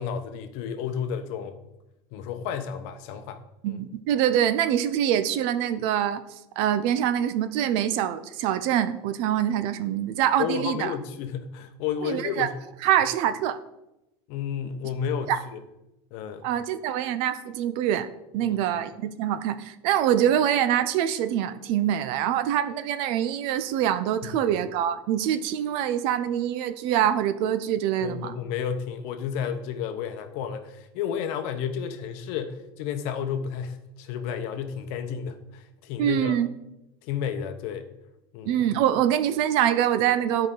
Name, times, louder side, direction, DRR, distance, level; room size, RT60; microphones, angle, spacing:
voice 1, 0.0-1.6 2.1-3.4 3.7-3.8 10.4-12.6 14.3-15.6 16.1-16.5 18.4-18.6 24.2-24.5 28.0-36.3 37.0-37.9 38.3-38.7, left 7 dB, 60° left, 7 dB, 0.9 m, -32 dB
voice 2, 3.6-6.2 6.6-10.9 12.0-12.5 12.8-13.6 15.3-15.4 16.4-18.1 18.3-28.3 36.0-36.5 38.5-40.5, right 10 dB, 55° right, 12 dB, 0.6 m, -24 dB
12.0 x 4.9 x 3.8 m, 0.90 s
cardioid pair, 155°, 11 cm